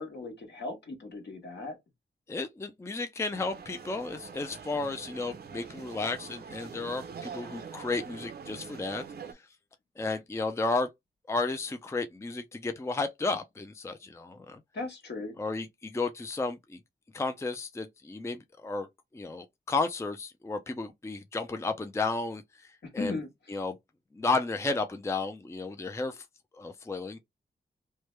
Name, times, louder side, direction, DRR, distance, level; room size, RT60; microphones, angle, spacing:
voice 1, 0.0-1.8 14.7-15.4 23.0-23.6, left 3 dB, 65° left, 1.3 m, -37 dB
voice 2, 2.3-9.0 10.0-10.9 11.3-14.6 15.4-16.8 17.1-18.9 19.1-23.2 23.5-23.8 24.1-26.2 26.6-27.2, left 3 dB, 15° left, 0.4 m, -33 dB
sound 1, 3.3-9.3, right 6 dB, 60° right, 0.6 m, -44 dB
3.2 x 2.1 x 3.2 m
cardioid pair, 65°, 19 cm